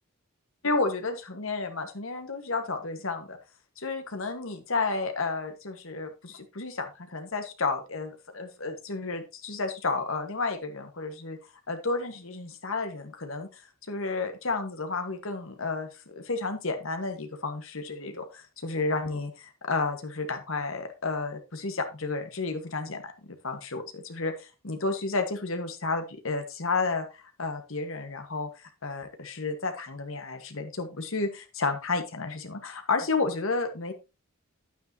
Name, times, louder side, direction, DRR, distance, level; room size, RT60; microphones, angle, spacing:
voice 1, 0.6-3.4 3.8-11.4 11.7-23.1 23.4-33.9, left 3 dB, 75° left, 7 dB, 1.4 m, -31 dB
9.6 x 9.1 x 2.8 m, 0.28 s
head